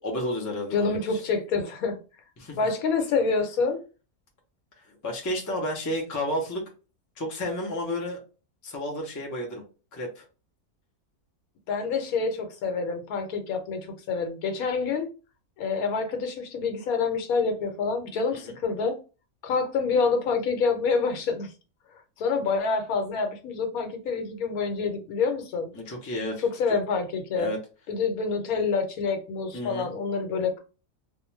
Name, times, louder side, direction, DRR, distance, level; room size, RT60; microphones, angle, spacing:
voice 1, 0.0-1.2 2.4-2.6 4.9-6.6 7.2-8.2 8.6-9.6 9.9-10.2 18.3-18.5 25.7-26.4 27.4-27.6 29.5-29.9, left 1 dB, 25° left, 0.4 m, -31 dB
voice 2, 0.7-2.0 2.6-3.8 11.7-15.1 15.6-19.0 19.4-21.5 22.2-25.7 26.4-27.5 27.9-30.6, left 4 dB, 80° left, 1.1 m, -27 dB
2.4 x 2.2 x 3.1 m
omnidirectional pair, 1.5 m